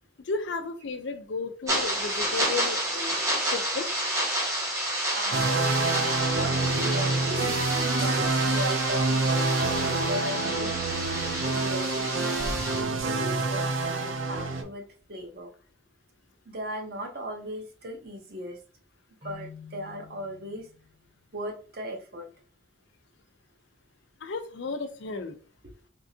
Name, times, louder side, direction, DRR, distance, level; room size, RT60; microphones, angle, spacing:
voice 1, 0.2-3.2 3.5-3.9 24.2-25.4, left 4 dB, 70° left, 8 dB, 0.5 m, -33 dB
sound 1, 1.7-12.8, right 1 dB, 15° right, 0.8 m, -30 dB
voice 2, 5.1-6.6 6.8-7.6 7.9-9.2 9.9-10.8 11.4-15.5 16.5-18.6 19.2-20.7 21.3-22.3 25.6-25.7, equal, 50° right, 3 dB, 0.8 m, -37 dB
sound 2, 5.3-14.6, right 3 dB, 85° right, 0.6 m, -27 dB
Keyboard (musical), 19.2-21.1, left 7 dB, 30° right, 1.0 m, -48 dB
3.6 x 2.8 x 2.7 m, 0.40 s
head